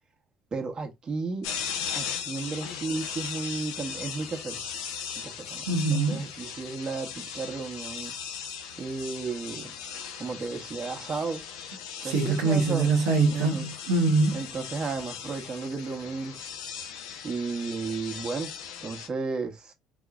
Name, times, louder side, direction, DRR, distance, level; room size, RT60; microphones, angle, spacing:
voice 1, 0.5-1.5 1.9-4.6 5.1-8.1 8.8-9.8 10.2-11.4 12.0-12.9 13.3-13.7 14.3-16.4 17.2-18.5 18.8-19.7, right 4 dB, 40° right, 1.2 m, -33 dB
sound 1, 1.4-19.1, left 7 dB, 85° left, 0.7 m, -38 dB
voice 2, 5.7-6.2 12.0-14.4, right 3 dB, 80° right, 1.0 m, -24 dB
4.1 x 2.9 x 2.4 m
hypercardioid pair, 65°, 2 cm